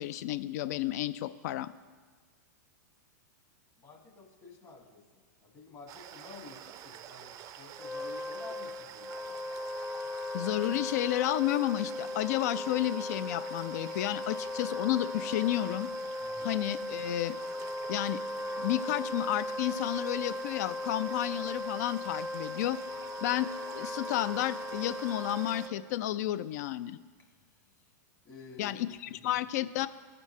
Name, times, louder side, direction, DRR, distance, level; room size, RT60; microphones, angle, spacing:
voice 1, 0.0-1.7 10.3-15.9 16.4-17.4 17.9-18.2 18.6-22.8 23.2-23.5 23.8-27.0 28.6-29.9, left 14 dB, 60° left, 15 dB, 0.4 m, -31 dB
voice 2, 3.8-9.4 16.2-16.5 28.2-28.8, left 3 dB, 30° left, 2 dB, 1.4 m, -51 dB
sound 1, 5.9-25.7, right 10 dB, 35° right, 0.4 m, -48 dB
Wind instrument woodwind instrument, 7.7-25.8, left 1 dB, 5° left, 0.6 m, -38 dB
15.0 x 5.1 x 3.2 m, 1.5 s
hypercardioid pair, 120°, 10 cm